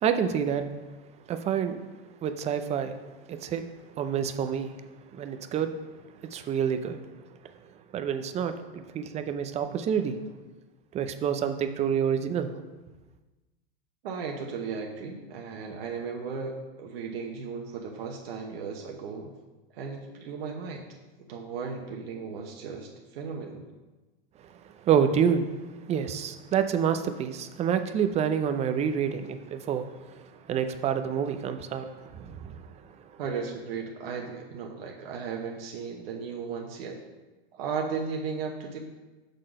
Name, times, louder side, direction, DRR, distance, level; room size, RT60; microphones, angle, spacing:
voice 1, 0.0-0.6 1.3-1.8 2.2-2.9 3.3-3.6 4.0-4.7 5.1-5.7 6.3-7.0 7.9-10.2 10.9-12.5 24.9-25.4 25.9-29.8 30.5-31.9 32.1-32.5, right 8 dB, 20° right, 9 dB, 0.5 m, -27 dB
voice 2, 14.0-19.3 19.7-20.8 21.3-23.6 33.2-37.0 37.5-38.9, right 5 dB, 70° right, 1 dB, 1.1 m, -35 dB
6.6 x 3.9 x 6.3 m, 1.2 s
hypercardioid pair, 125°, 31 cm